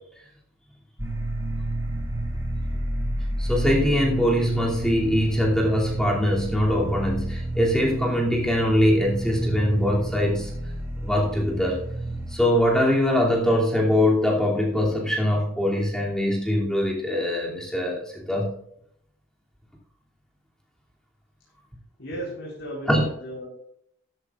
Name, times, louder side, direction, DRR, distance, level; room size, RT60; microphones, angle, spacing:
sound 1, 1.0-12.4, right 1 dB, 15° right, 2.4 m, -30 dB
voice 1, 3.4-10.5 11.0-11.8 12.3-18.5 22.9-23.0, left 1 dB, 5° left, -3 dB, 2.8 m, -22 dB
voice 2, 22.0-23.5, right 1 dB, 60° left, -5 dB, 4.6 m, -34 dB
13.5 x 13.5 x 2.5 m, 0.70 s
head